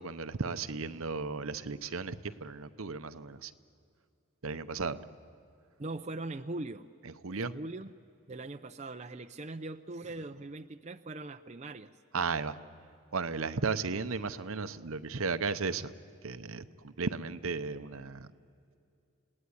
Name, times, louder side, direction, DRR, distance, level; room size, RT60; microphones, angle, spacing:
voice 1, 0.0-3.5 4.4-5.0 7.0-7.5 12.1-12.6 13.1-15.9 16.2-18.3, right 4 dB, 70° right, 11 dB, 0.8 m, -35 dB
voice 2, 5.8-6.9 7.3-7.9 8.3-11.9, right 2 dB, 30° right, 7 dB, 0.5 m, -41 dB
29.5 x 18.0 x 9.7 m, 2.5 s
head